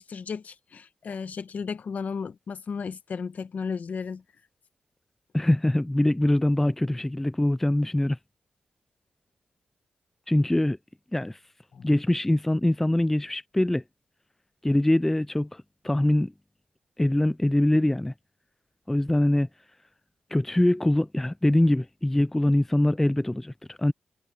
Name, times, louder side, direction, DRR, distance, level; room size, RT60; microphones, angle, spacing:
voice 1, 0.0-4.2 11.7-12.0, left 5 dB, 60° left, 1.2 m, -34 dB
voice 2, 5.3-8.2 10.3-10.8 11.1-11.4 11.8-13.8 14.6-16.3 17.0-18.1 18.9-19.5 20.3-23.9, left 1 dB, 10° left, 0.3 m, -23 dB
cardioid pair, 90°, 3 cm